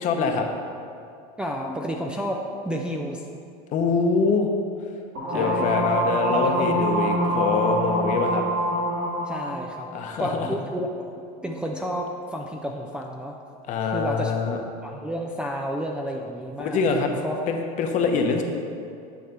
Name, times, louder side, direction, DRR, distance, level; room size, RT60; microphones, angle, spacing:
voice 1, 0.0-0.5 3.7-4.5 5.3-8.4 9.9-10.5 13.7-14.6 16.6-17.1 17.5-18.4, left 4 dB, 40° left, 4 dB, 0.8 m, -24 dB
voice 2, 1.4-3.2 5.3-5.7 6.3-6.9 9.3-11.1 11.4-13.4 13.9-14.3 14.8-16.8 17.2-17.4, equal, 5° right, -1 dB, 0.3 m, -31 dB
sound 1, 5.2-9.7, right 1 dB, 45° right, 1.9 m, -25 dB
9.4 x 3.3 x 5.8 m, 2.5 s
supercardioid pair, 135°, 20 cm